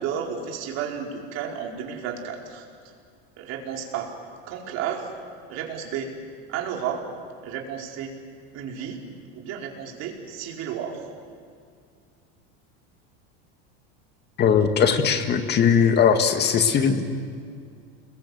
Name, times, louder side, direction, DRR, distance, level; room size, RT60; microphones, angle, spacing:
voice 1, 0.0-2.7 3.4-4.1 4.5-5.2 5.5-6.1 6.5-7.0 7.4-8.1 8.5-9.0 9.3-11.0, right 8 dB, 50° right, 0 dB, 4.5 m, -32 dB
voice 2, 14.4-17.1, left 7 dB, 30° left, 7 dB, 2.0 m, -19 dB
30.0 x 21.5 x 7.9 m, 2.2 s
supercardioid pair, 140°, 32 cm